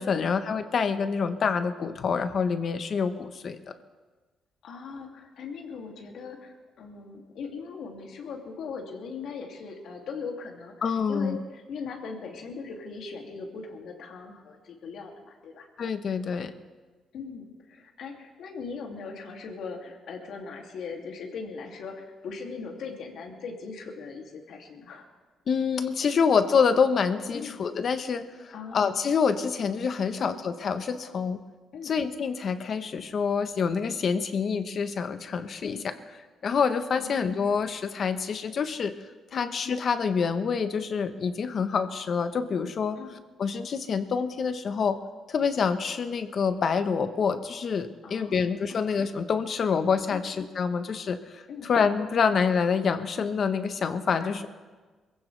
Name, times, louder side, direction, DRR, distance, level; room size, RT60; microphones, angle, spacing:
voice 1, 0.0-3.6 10.8-11.4 15.8-16.5 25.5-31.4 31.8-35.9 36.4-38.9 39.3-43.0 43.4-45.0 45.3-54.5, left 6 dB, 55° left, 9 dB, 1.1 m, -27 dB
voice 2, 4.6-10.7 11.1-15.7 17.1-25.1 26.1-26.2 27.3-27.6 28.5-28.9 30.2-30.4 31.7-31.9 35.6-35.8 37.0-37.2 39.3-39.5 43.0-43.2 48.0-48.9 50.1-50.2 51.5-51.7 54.1-54.5, left 5 dB, 70° left, 1 dB, 2.7 m, -39 dB
22.5 x 15.5 x 3.4 m, 1.3 s
cardioid pair, 90°, 0 cm